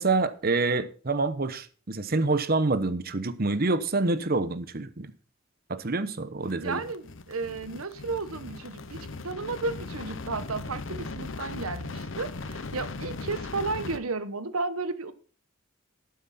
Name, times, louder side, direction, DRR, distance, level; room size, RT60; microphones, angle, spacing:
voice 1, 0.0-5.1 5.7-6.8, right 3 dB, 45° right, 0.9 m, -27 dB
sound 1, 6.4-14.0, left 3 dB, 65° left, 0.8 m, -38 dB
voice 2, 6.6-15.1, right 3 dB, 85° right, 1.1 m, -33 dB
12.0 x 9.4 x 4.2 m
head